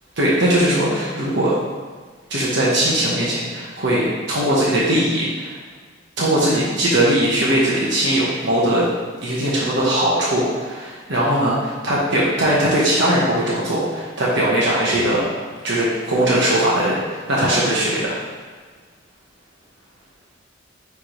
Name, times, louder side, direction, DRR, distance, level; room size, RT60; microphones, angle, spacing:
voice 1, 0.2-1.5 2.3-5.6 6.2-8.9 9.2-15.2 15.6-18.2, right 1 dB, 60° right, -6 dB, 1.2 m, -19 dB
9.7 x 3.5 x 3.1 m, 1.5 s
head